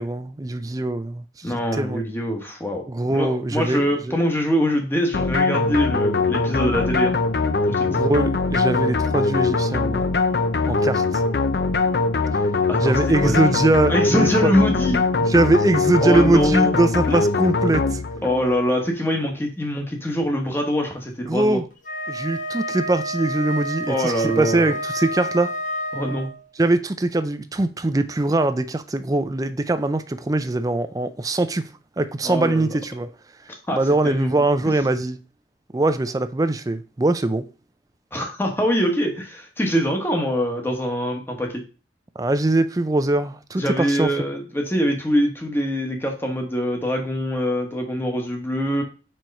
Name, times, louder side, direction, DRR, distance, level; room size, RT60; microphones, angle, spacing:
voice 1, 0.0-2.0 2.9-4.2 7.9-10.1 10.7-11.2 12.3-12.4 12.8-14.5 15.3-18.0 21.3-21.7 22.1-25.5 26.6-31.7 32.0-33.1 33.7-35.2 35.7-37.5 42.2-44.1, right 2 dB, 20° right, 0.4 m, -22 dB
voice 2, 1.4-2.8 3.1-7.2 7.7-8.0 12.7-12.9 13.2-13.5 13.9-15.0 16.0-16.7 17.1-17.2 18.2-21.6 23.9-24.7 25.9-26.3 32.2-32.7 33.5-33.8 34.0-34.4 38.1-41.6 43.6-48.8, equal, 10° left, 1.1 m, -23 dB
sound 1, 5.1-18.4, left 3 dB, 60° left, 0.5 m, -22 dB
Wind instrument woodwind instrument, 21.8-26.4, equal, 45° left, 1.2 m, -29 dB
4.6 x 4.4 x 5.2 m
head